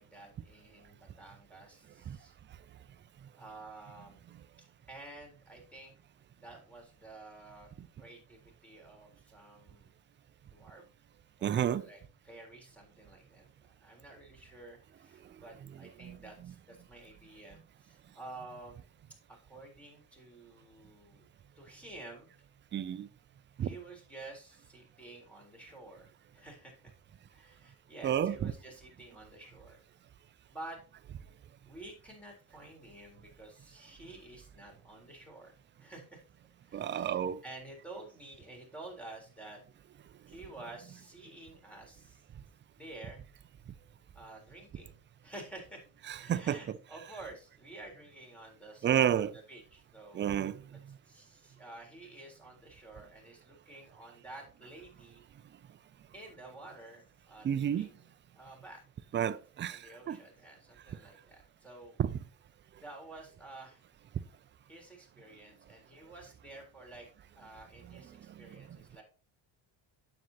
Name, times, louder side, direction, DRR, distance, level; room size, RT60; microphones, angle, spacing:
voice 1, 0.0-2.3 3.4-4.2 4.6-5.9 6.4-7.7 8.0-9.9 10.5-10.8 11.4-13.5 13.8-18.8 19.5-21.3 21.6-22.3 23.6-26.9 27.3-29.8 30.5-30.8 31.6-36.2 36.6-39.6 40.3-42.2 42.8-43.2 44.1-45.8 46.2-50.3 51.1-55.2 56.1-58.0 58.4-58.8 59.7-62.0 62.8-63.8 64.7-67.1 67.4-69.0, right 2 dB, 5° left, 3.8 m, -51 dB
voice 2, 11.4-11.9 16.0-16.2 22.7-23.1 23.6-23.8 28.0-28.5 36.7-37.4 46.1-46.8 48.8-49.3 50.1-50.8 57.4-57.9 59.1-60.2 62.0-62.2 68.4-68.5, right 9 dB, 25° right, 0.3 m, -31 dB
9.3 x 7.7 x 2.8 m
cardioid pair, 105°, 49 cm